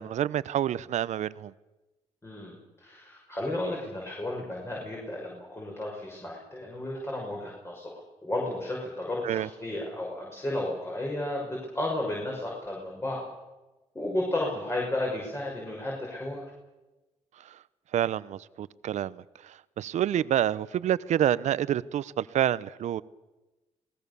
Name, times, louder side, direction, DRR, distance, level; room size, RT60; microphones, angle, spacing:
voice 1, 0.0-1.5 9.2-9.5 17.4-17.6 17.9-23.0, right 11 dB, 75° right, 17 dB, 0.8 m, -28 dB
voice 2, 2.2-13.2 13.9-16.4, left 1 dB, 20° left, -2 dB, 6.2 m, -33 dB
27.0 x 19.5 x 7.0 m, 1.1 s
cardioid pair, 100°, 12 cm